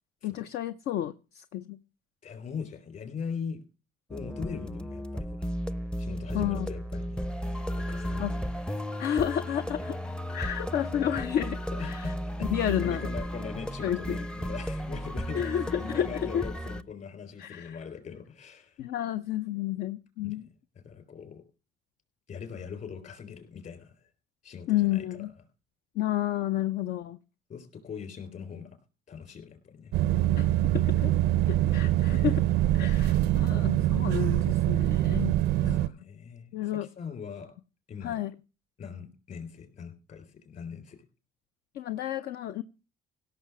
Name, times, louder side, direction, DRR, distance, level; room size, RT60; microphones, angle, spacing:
voice 1, 0.2-1.8 6.3-6.7 8.2-8.3 9.0-10.0 10.3-12.1 12.5-13.1 13.8-14.2 15.3-16.4 17.4-17.8 18.8-20.5 24.7-25.3 26.0-27.2 30.4-30.5 30.7-31.1 31.5-32.5 32.7-35.3 35.6-35.9 36.5-36.9 38.0-38.3 41.7-42.6, left 11 dB, 70° left, 12 dB, 0.6 m, -31 dB
voice 2, 2.2-3.6 4.1-5.5 6.0-7.2 7.9-8.4 11.7-18.8 20.2-20.3 20.8-21.4 22.3-24.1 24.4-25.0 27.5-28.8 29.1-29.9 35.6-37.5 37.9-38.2 38.8-41.0, left 6 dB, 50° left, 8 dB, 3.9 m, -41 dB
sound 1, 4.1-16.8, equal, 5° left, 0.5 m, -34 dB
sound 2, 29.9-35.9, right 14 dB, 80° right, 0.5 m, -24 dB
17.0 x 6.6 x 6.0 m, 0.34 s
cardioid pair, 110°, 17 cm